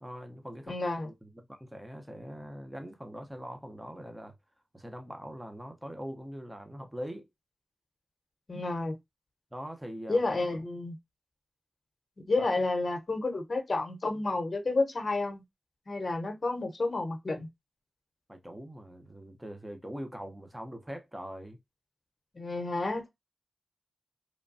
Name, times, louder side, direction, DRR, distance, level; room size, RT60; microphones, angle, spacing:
voice 1, 0.0-0.8 1.0-4.3 4.7-7.3 9.5-10.2 10.5-10.6 12.4-12.5 18.3-21.6, equal, 10° right, 0.7 m, -42 dB
voice 2, 0.7-1.1 8.5-9.0 10.1-11.0 12.3-15.4 15.9-17.5 22.3-23.1, left 3 dB, 50° left, 0.9 m, -30 dB
3.1 x 2.2 x 2.6 m
cardioid pair, 55°, 0 cm